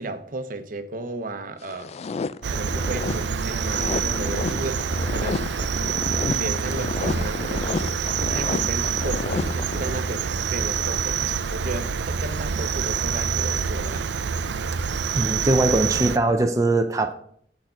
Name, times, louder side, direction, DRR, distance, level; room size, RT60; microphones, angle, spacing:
voice 1, 0.0-1.9 2.5-5.5 6.3-14.1, right 2 dB, 50° right, 0.9 m, -34 dB
sound 1, 1.6-10.2, left 4 dB, 35° left, 0.3 m, -31 dB
Cricket, 2.4-16.2, right 6 dB, 80° right, 0.5 m, -26 dB
voice 2, 15.1-17.1, right 2 dB, 20° right, 0.5 m, -21 dB
7.8 x 6.5 x 5.8 m
head